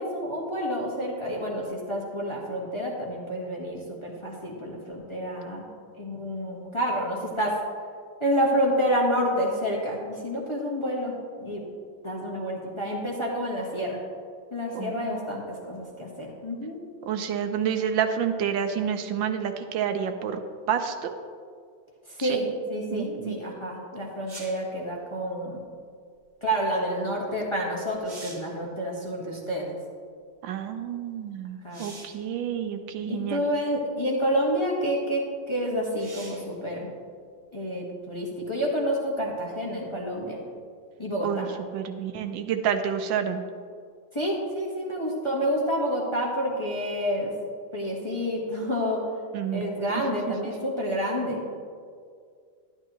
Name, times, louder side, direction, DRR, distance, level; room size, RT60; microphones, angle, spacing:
voice 1, 0.0-5.6 6.0-7.6 8.2-11.6 12.0-14.0 14.5-16.8 22.1-25.6 26.4-29.7 31.6-31.9 33.1-36.9 37.5-40.4 41.0-41.5 44.1-47.3 47.7-49.1 49.5-51.4, equal, 20° left, -3 dB, 1.1 m, -29 dB
voice 2, 14.7-15.4 17.1-20.4 20.7-21.1 22.2-22.4 22.9-23.4 30.4-33.4 41.2-41.5 41.7-43.4 49.3-49.7, right 8 dB, 80° right, 7 dB, 1.4 m, -29 dB
sound 1, 24.3-24.7 27.4-27.5 27.9-28.6 31.7-32.3 33.3-33.4 36.0-36.5 40.1-40.2, right 2 dB, 45° right, 2.0 m, -44 dB
12.0 x 10.5 x 3.0 m, 2.1 s
omnidirectional pair, 2.1 m